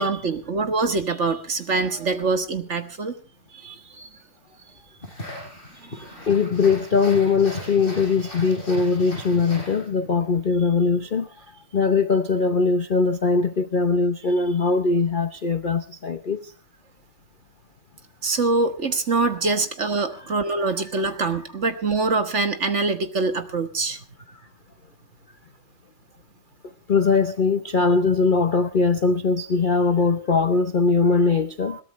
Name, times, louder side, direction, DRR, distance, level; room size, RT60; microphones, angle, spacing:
voice 1, 0.0-3.1 3.5-3.7 6.0-6.3 18.2-24.0 31.7-31.8, right 3 dB, 40° right, 1.4 m, -24 dB
sound 1, 5.0-10.2, left 1 dB, 25° left, 6.8 m, -37 dB
voice 2, 6.3-11.4 11.7-16.5 26.9-31.8, left 4 dB, 55° left, 0.5 m, -21 dB
21.5 x 17.0 x 3.2 m
omnidirectional pair, 2.2 m